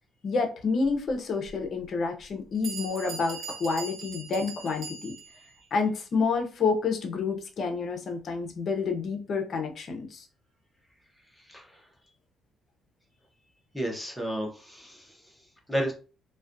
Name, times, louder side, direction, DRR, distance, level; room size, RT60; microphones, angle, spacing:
voice 1, 0.2-5.1 5.7-10.3, left 4 dB, 45° left, 4 dB, 0.5 m, -29 dB
Bell, 1.5-1.6 2.3-2.4 2.6-5.4, right 5 dB, 85° right, 0.8 m, -40 dB
voice 2, 11.5-11.8 13.7-15.2 15.7-15.9, equal, ahead, 0 dB, 0.6 m, -32 dB
2.3 x 2.1 x 2.5 m, 0.35 s
cardioid pair, 155°, 0 cm